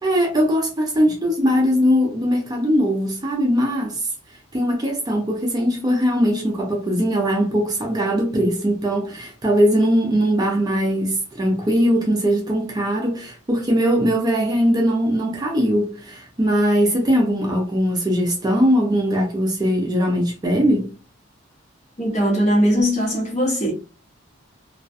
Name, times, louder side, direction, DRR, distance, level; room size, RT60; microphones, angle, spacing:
voice 1, 0.0-4.1 4.5-20.9, equal, 20° right, 0.4 m, -20 dB
voice 2, 22.0-23.7, equal, 35° left, 1.0 m, -19 dB
2.4 x 2.1 x 2.5 m
head